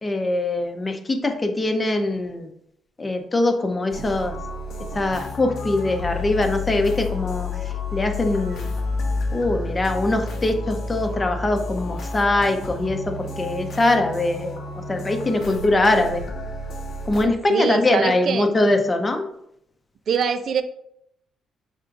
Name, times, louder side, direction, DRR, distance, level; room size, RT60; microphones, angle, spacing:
voice 1, 0.0-2.5 3.0-4.4 4.9-7.5 7.9-8.6 9.3-14.6 14.9-16.2 17.1-19.2, left 2 dB, 25° left, 5 dB, 0.7 m, -22 dB
sound 1, 3.9-17.3, left 3 dB, 70° left, 0.9 m, -30 dB
voice 2, 17.5-18.5 20.1-20.6, right 7 dB, 60° right, 10 dB, 0.3 m, -23 dB
5.7 x 3.6 x 2.5 m, 0.74 s
cardioid pair, 90°, 0 cm